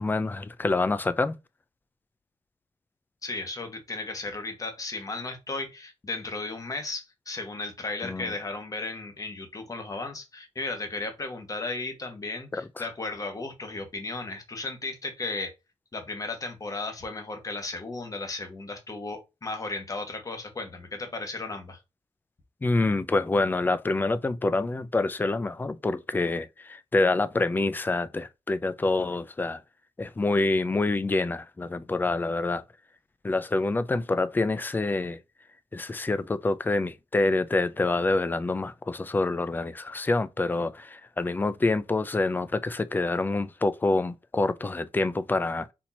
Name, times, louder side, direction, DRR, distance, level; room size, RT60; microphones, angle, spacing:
voice 1, 0.0-1.4 8.0-8.3 12.5-12.9 22.6-29.6 30.0-32.6 33.2-35.2 35.7-45.7, left 2 dB, 20° left, 0.4 m, -26 dB
voice 2, 3.2-15.5 15.9-21.8, left 3 dB, 35° left, 1.3 m, -35 dB
4.3 x 2.8 x 4.2 m
wide cardioid pair, 130°, 11 cm